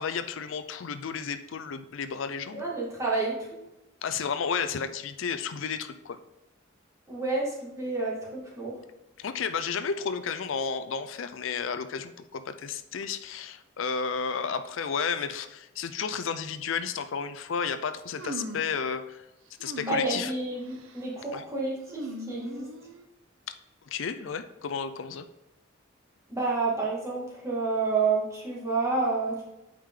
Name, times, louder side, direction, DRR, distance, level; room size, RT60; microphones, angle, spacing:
voice 1, 0.0-2.6 4.0-6.2 9.2-19.2 19.6-20.3 21.3-21.4 23.9-25.2, left 6 dB, 75° left, 10 dB, 0.5 m, -32 dB
voice 2, 2.5-3.5 7.1-8.7 19.9-22.6 26.3-29.4, right 3 dB, 15° right, -5 dB, 2.0 m, -29 dB
sound 1, 18.2-18.8 19.6-20.3 20.6-21.1 21.9-23.1, right 1 dB, 80° right, 0.7 m, -40 dB
8.7 x 5.0 x 3.7 m, 0.97 s
head